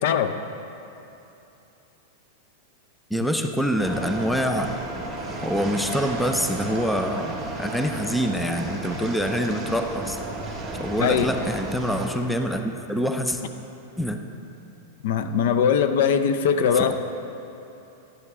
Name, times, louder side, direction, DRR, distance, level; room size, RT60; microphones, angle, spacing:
voice 1, 0.0-0.4 11.0-11.3 15.0-16.9, left 7 dB, 65° left, 10 dB, 0.5 m, -21 dB
voice 2, 3.1-4.7 5.4-10.2 10.8-13.4 14.0-14.2, equal, 5° left, 5 dB, 0.4 m, -25 dB
sound 1, 3.8-12.1, right 2 dB, 15° right, 1.4 m, -33 dB
11.0 x 7.8 x 3.6 m, 2.9 s
supercardioid pair, 155°, 0 cm